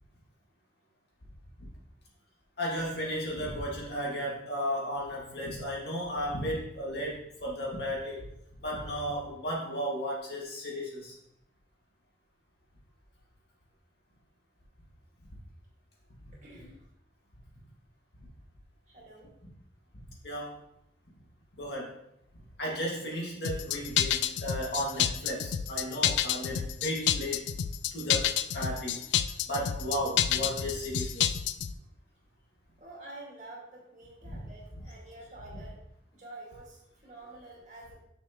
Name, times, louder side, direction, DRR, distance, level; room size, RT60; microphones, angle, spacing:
voice 1, 2.6-8.2 8.6-11.2 19.9-20.6 21.6-22.0 22.6-27.6 27.9-29.0 29.5-31.4 34.3-34.4, equal, 70° left, -3 dB, 2.0 m, -34 dB
voice 2, 16.3-16.8 18.9-19.3 32.8-35.8 36.1-38.0, right 2 dB, 40° right, -3 dB, 2.0 m, -48 dB
sound 1, 23.4-31.7, left 10 dB, 85° left, 0.3 m, -29 dB
6.7 x 6.5 x 3.0 m, 0.78 s
head